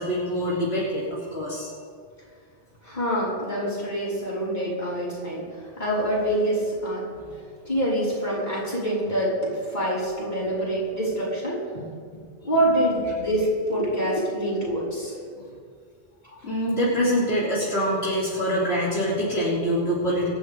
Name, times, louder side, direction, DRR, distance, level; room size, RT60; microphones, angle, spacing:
voice 1, 0.0-1.7 3.9-4.0 7.3-7.4 15.4-15.5 16.4-20.3, equal, 75° left, -8 dB, 3.7 m, -25 dB
voice 2, 2.8-5.5 5.8-7.1 7.7-15.2 16.2-16.3, right 1 dB, 45° left, -7 dB, 5.5 m, -26 dB
26.0 x 12.0 x 3.7 m, 2.1 s
omnidirectional pair, 1.1 m